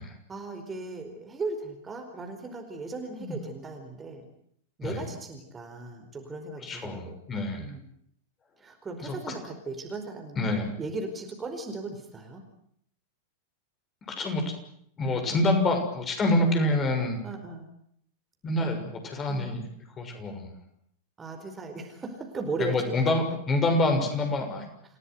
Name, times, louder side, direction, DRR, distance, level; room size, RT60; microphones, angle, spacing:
voice 1, 0.3-4.3 4.8-7.1 7.6-7.8 8.6-12.4 15.2-15.6 16.5-16.7 17.2-17.7 19.3-19.6 21.2-23.4 23.8-23.9, right 3 dB, 20° right, 5 dB, 4.7 m, -37 dB
voice 2, 6.6-7.7 9.0-9.3 10.4-10.7 14.1-14.5 15.0-17.2 18.4-19.6 20.0-20.5 22.6-24.7, left 2 dB, 25° left, 4 dB, 6.6 m, -27 dB
29.0 x 17.5 x 9.4 m, 0.69 s
figure-of-eight pair, 90°, 0 cm